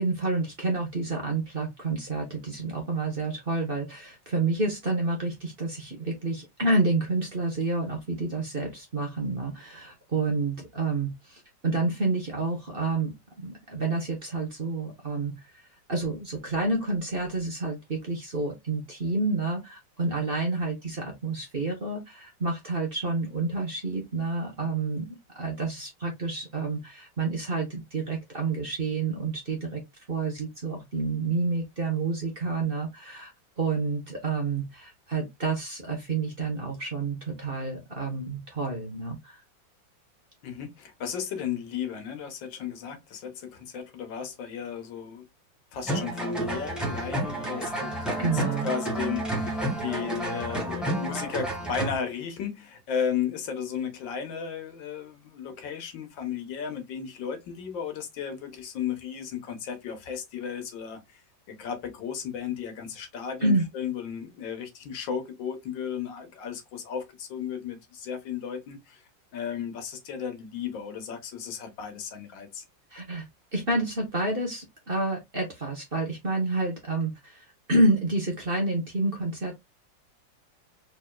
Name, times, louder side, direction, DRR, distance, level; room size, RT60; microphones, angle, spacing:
voice 1, 0.0-15.6 15.9-29.8 30.1-33.3 33.6-39.4 48.2-48.7 63.4-63.6 72.9-73.2 73.5-79.5, right 3 dB, 35° right, 1.2 m, -29 dB
voice 2, 40.4-45.3 45.7-61.2 61.5-72.6, left 7 dB, 80° left, 1.8 m, -34 dB
sound 1, 45.9-51.9, right 1 dB, ahead, 1.2 m, -30 dB
4.1 x 3.6 x 2.3 m
omnidirectional pair, 2.0 m